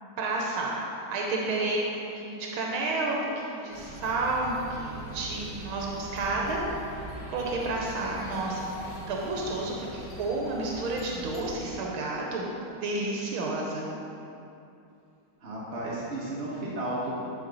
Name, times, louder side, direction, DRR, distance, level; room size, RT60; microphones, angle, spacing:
voice 1, 0.2-6.6 7.3-8.7 9.1-12.5 12.8-13.9, right 2 dB, 85° right, -2 dB, 1.7 m, -31 dB
sound 1, 3.7-11.7, equal, 35° left, 1.4 m, -42 dB
voice 2, 15.4-17.1, right 1 dB, 40° right, -6 dB, 1.1 m, -33 dB
10.0 x 4.7 x 4.0 m, 2.7 s
omnidirectional pair, 2.2 m